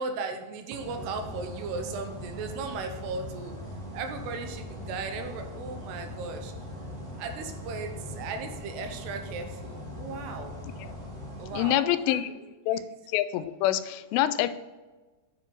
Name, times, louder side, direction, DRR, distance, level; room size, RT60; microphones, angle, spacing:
voice 1, 0.0-3.6 3.9-6.5 7.2-10.6 11.4-12.3 12.7-12.8, right 4 dB, 80° right, 6 dB, 2.9 m, -36 dB
sound 1, 0.8-11.7, left 1 dB, 15° left, 1.8 m, -40 dB
voice 2, 11.5-12.3 12.7-12.8 13.1-14.5, left 12 dB, 90° left, 12 dB, 2.7 m, -26 dB
7.5 x 7.4 x 3.9 m, 1.2 s
omnidirectional pair, 4.8 m